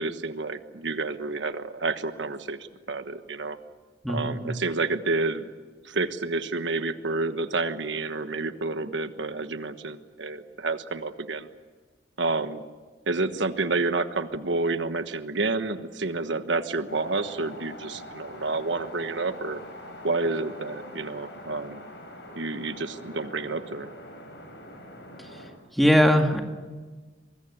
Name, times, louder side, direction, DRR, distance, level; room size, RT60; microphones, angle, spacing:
voice 1, 0.0-2.6 2.9-3.6 4.1-5.5 5.8-11.5 12.2-12.6 13.1-19.6 20.0-21.8 22.3-23.9, right 3 dB, 80° right, 10 dB, 1.3 m, -29 dB
voice 2, 4.0-4.5 25.7-26.4, equal, ahead, 3 dB, 2.1 m, -20 dB
sound 1, 16.9-25.5, left 1 dB, 70° left, 7.0 m, -44 dB
24.0 x 21.5 x 8.6 m, 1.4 s
head